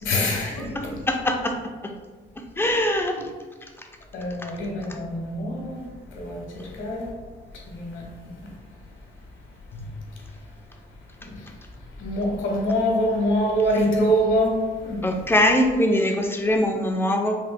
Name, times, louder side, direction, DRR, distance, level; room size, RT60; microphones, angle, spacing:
voice 1, 0.0-1.0 4.1-5.9 6.1-7.1 7.7-8.0 12.0-15.1, equal, 80° left, 1.2 m, -24 dB
voice 2, 1.1-1.5 2.6-3.2 15.0-17.4, left 1 dB, 10° left, 0.6 m, -22 dB
5.2 x 3.3 x 2.2 m
cardioid pair, 90°, 20 cm